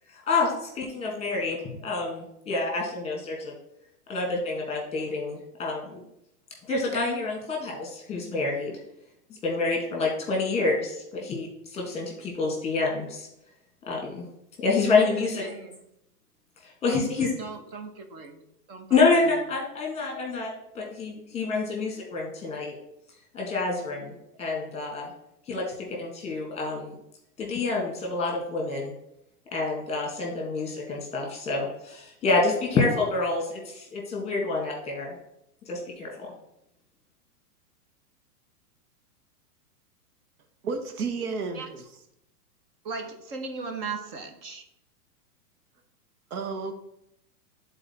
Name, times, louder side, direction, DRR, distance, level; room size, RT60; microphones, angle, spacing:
voice 1, 0.1-3.5 4.1-6.0 6.7-8.7 9.4-13.3 13.9-14.2 14.6-15.5 16.6-17.3 18.9-22.7 23.3-25.1 25.5-25.6 25.9-27.0 27.4-28.9 29.5-35.1 35.7-36.3, left 3 dB, 15° left, 1.6 m, -27 dB
voice 2, 15.0-15.8 16.9-17.1 17.4-18.4 18.7-19.0 41.5-41.7 42.8-44.6, right 4 dB, 40° right, 1.1 m, -37 dB
voice 3, 40.6-41.9 46.3-46.7, right 4 dB, 70° right, 1.3 m, -31 dB
9.6 x 4.1 x 4.2 m
hypercardioid pair, 150°, 46 cm